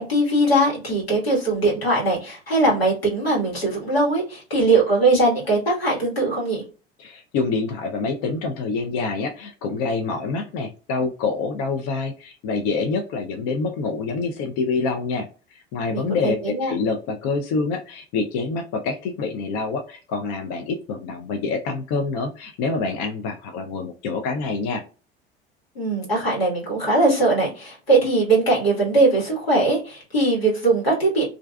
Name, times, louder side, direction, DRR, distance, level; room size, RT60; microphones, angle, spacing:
voice 1, 0.0-6.6 15.9-16.7 25.7-31.3, right 2 dB, 90° left, -4 dB, 1.3 m, -20 dB
voice 2, 7.0-24.8, left 4 dB, 55° left, 5 dB, 0.5 m, -26 dB
2.4 x 2.3 x 2.2 m, 0.35 s
hypercardioid pair, 70°, 29 cm